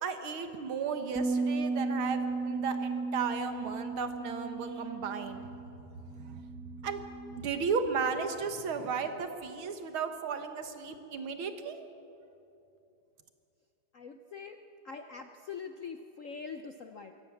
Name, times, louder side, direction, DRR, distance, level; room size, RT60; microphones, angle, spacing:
voice 1, 0.0-5.4 6.2-6.4 6.8-7.0 7.3-11.9, right 5 dB, 80° right, 7 dB, 2.2 m, -34 dB
sound 1, 1.2-7.4, right 3 dB, ahead, 1.5 m, -35 dB
voice 2, 13.9-17.1, left 5 dB, 65° left, 7 dB, 0.8 m, -44 dB
24.0 x 16.5 x 7.2 m, 2.7 s
omnidirectional pair, 2.2 m